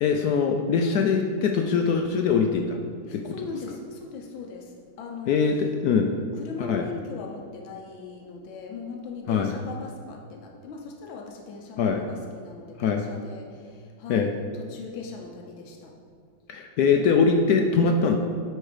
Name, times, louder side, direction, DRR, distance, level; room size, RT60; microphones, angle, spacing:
voice 1, 0.0-2.8 3.1-3.3 5.3-6.1 6.6-6.8 9.3-9.5 11.8-12.0 12.8-13.0 14.1-14.3 16.5-18.2, left 5 dB, 70° left, 4 dB, 0.9 m, -22 dB
voice 2, 3.1-5.5 6.3-15.9, left 4 dB, 90° left, 2 dB, 1.6 m, -40 dB
9.1 x 4.3 x 4.9 m, 2.2 s
omnidirectional pair, 2.1 m